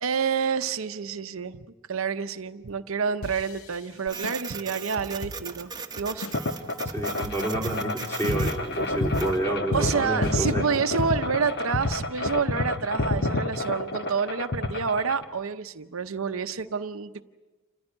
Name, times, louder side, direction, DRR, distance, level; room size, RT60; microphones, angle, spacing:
voice 1, 0.0-6.3 9.7-17.2, right 6 dB, 70° right, 8 dB, 0.7 m, -28 dB
sound 1, 3.2-6.5 6.7-6.8 7.2-7.8 8.2-8.8 9.2-11.0, left 3 dB, 80° left, 0.9 m, -41 dB
Printer, 4.1-9.4, right 5 dB, 20° right, 1.1 m, -39 dB
sound 2, 6.3-15.2, left 2 dB, 50° left, 1.4 m, -28 dB
voice 2, 6.9-10.9, right 2 dB, 10° left, 0 dB, 3.7 m, -29 dB
28.0 x 15.0 x 9.8 m, 1.2 s
head